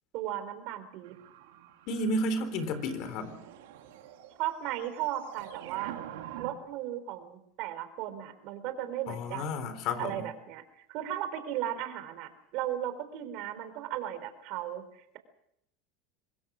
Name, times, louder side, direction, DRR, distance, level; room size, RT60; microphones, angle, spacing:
voice 1, 0.1-1.1 4.4-5.9 6.4-9.6 10.0-15.2, right 12 dB, 60° right, 10 dB, 3.8 m, -36 dB
sound 1, 1.0-6.5, right 11 dB, 80° right, 2.4 m, -46 dB
voice 2, 1.9-3.4 9.1-10.2, left 1 dB, 60° left, 10 dB, 4.0 m, -32 dB
25.5 x 20.0 x 6.3 m, 0.77 s
supercardioid pair, 105°, 0 cm